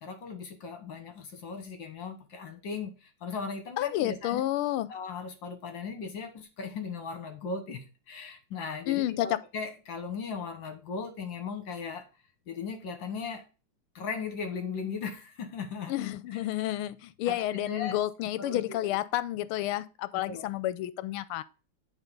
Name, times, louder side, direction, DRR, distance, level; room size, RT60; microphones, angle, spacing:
voice 1, 0.0-4.4 4.9-12.1 12.5-13.4 14.0-15.9 17.3-18.0 18.4-18.8 20.1-20.5, left 5 dB, 65° left, 1.9 m, -37 dB
voice 2, 3.8-4.9 8.9-9.4 15.9-21.4, left 14 dB, 85° left, 1.5 m, -30 dB
11.0 x 3.7 x 5.3 m
omnidirectional pair, 2.3 m